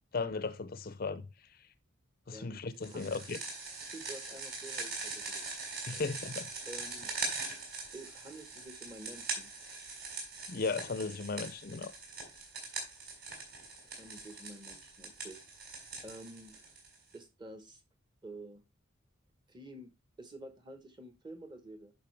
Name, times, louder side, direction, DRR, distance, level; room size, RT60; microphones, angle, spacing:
voice 1, 0.1-1.3 2.3-3.4 5.9-6.5 10.5-11.9, left 4 dB, 45° left, 0.5 m, -36 dB
voice 2, 2.8-3.3 3.9-5.4 5.9-6.0 6.7-7.1 7.9-9.5 13.8-15.4 16.0-16.5 17.1-17.8 18.2-18.6 19.5-21.9, right 1 dB, 20° right, 1.1 m, -49 dB
sound 1, 2.8-17.1, right 3 dB, 50° right, 4.2 m, -42 dB
10.5 x 5.4 x 3.3 m
head